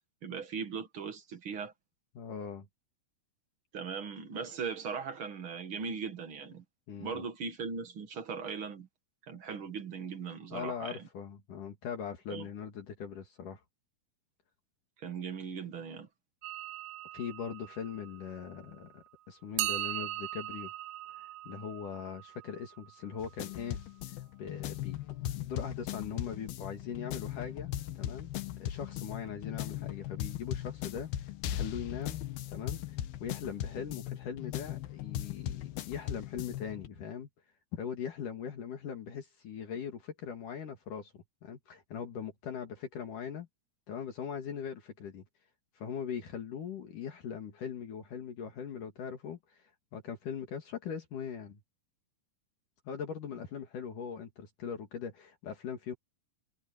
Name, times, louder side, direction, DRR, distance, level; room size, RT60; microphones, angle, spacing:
voice 1, 0.2-1.7 3.7-6.6 7.0-8.9 9.2-11.1 12.3-12.5 15.0-16.1, right 5 dB, 45° right, 2.1 m, -39 dB
voice 2, 2.2-2.7 6.9-7.2 10.5-13.6 17.1-20.7 21.2-23.8 24.4-25.0 25.4-28.3 28.6-37.3 37.7-43.5 43.9-45.2 45.8-49.6 49.9-51.6 52.9-55.9, left 7 dB, 60° left, 3.5 m, -40 dB
sound 1, 16.4-18.9 19.6-23.5, right 15 dB, 85° right, 2.6 m, -40 dB
sound 2, 23.2-36.9, left 12 dB, 85° left, 3.0 m, -38 dB
omnidirectional pair, 4.2 m